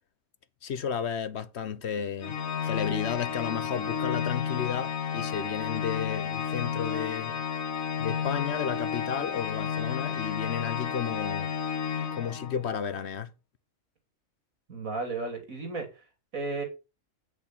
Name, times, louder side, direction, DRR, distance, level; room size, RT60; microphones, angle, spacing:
voice 1, 0.6-2.4 2.6-7.3 8.0-11.5 12.1-13.3, left 8 dB, 60° left, 1.0 m, -33 dB
Organ, 2.2-12.8, left 7 dB, 85° left, 1.7 m, -32 dB
voice 2, 14.7-16.0 16.3-16.6, right 3 dB, 85° right, 3.2 m, -34 dB
8.5 x 6.4 x 6.0 m
omnidirectional pair, 1.4 m